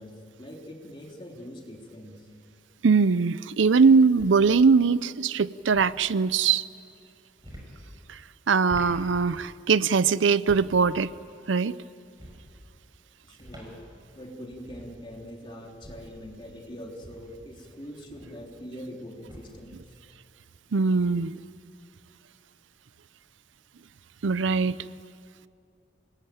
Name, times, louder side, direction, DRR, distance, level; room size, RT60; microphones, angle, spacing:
voice 1, 0.0-2.3 13.3-13.8 14.1-19.8, equal, 25° left, 0 dB, 3.4 m, -43 dB
sound 1, 2.1-2.6 3.8-4.5 5.5-6.0 7.3-7.8 8.5-9.0 10.3-10.9 12.0-12.5 13.3-13.8 14.1-14.2 14.4-15.0 15.6-16.2 16.8-18.5 19.2-19.7, equal, 20° right, 5.8 m, -46 dB
voice 2, 2.8-6.6 8.1-8.2 8.5-11.1 11.5-11.8 20.7-21.4 24.2-24.8, right 5 dB, 85° right, 17 dB, 0.6 m, -21 dB
26.5 x 20.0 x 9.2 m, 2.4 s
head